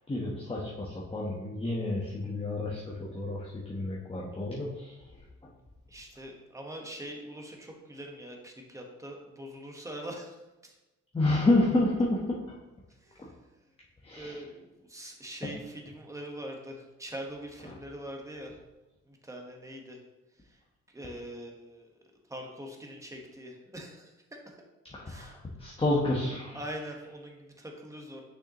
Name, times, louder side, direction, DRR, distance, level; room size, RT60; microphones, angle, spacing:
voice 1, 0.1-4.9 11.1-12.5 14.0-14.4 24.9-26.6, left 2 dB, 20° left, -3 dB, 1.1 m, -29 dB
voice 2, 5.9-10.4 10.6-10.8 13.0-13.5 14.1-18.6 19.1-20.0 20.4-20.6 20.9-21.9 22.3-24.6 25.1-25.4 26.5-28.2, equal, 10° right, 1 dB, 1.2 m, -43 dB
6.4 x 6.0 x 3.0 m, 1.0 s
cardioid pair, 90°, 30 cm